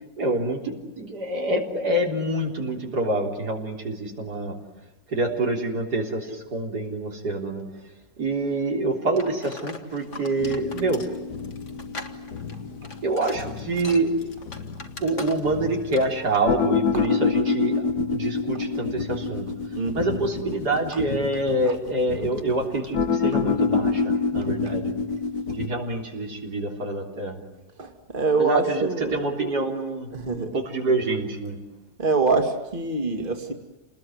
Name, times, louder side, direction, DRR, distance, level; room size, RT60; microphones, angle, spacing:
voice 1, 0.2-4.5 5.1-7.6 8.2-11.0 13.0-14.1 15.0-17.8 18.1-19.5 19.9-24.9 25.5-27.4 28.4-31.6, right 2 dB, 90° right, 1 dB, 4.1 m, -26 dB
sound 1, 9.2-15.7 15.9-16.2, left 3 dB, 50° left, 2.2 m, -40 dB
sound 2, 10.4-25.7, left 4 dB, 70° left, 1.9 m, -27 dB
voice 2, 19.7-20.2 24.6-24.7 27.8-29.1 30.1-30.6 32.0-33.5, right 4 dB, 30° right, 5 dB, 2.5 m, -25 dB
29.0 x 20.5 x 9.5 m, 1.0 s
omnidirectional pair, 1.7 m